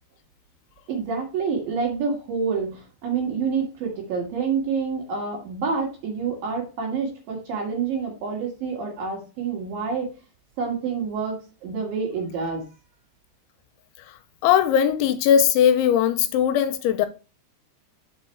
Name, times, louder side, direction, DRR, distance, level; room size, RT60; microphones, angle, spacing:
voice 1, 0.9-10.1 10.6-11.4 11.6-12.6, right 5 dB, 60° right, 3.0 m, -27 dB
voice 2, 14.4-17.1, left 9 dB, 85° left, 2.9 m, -19 dB
6.5 x 4.5 x 4.4 m
omnidirectional pair, 5.4 m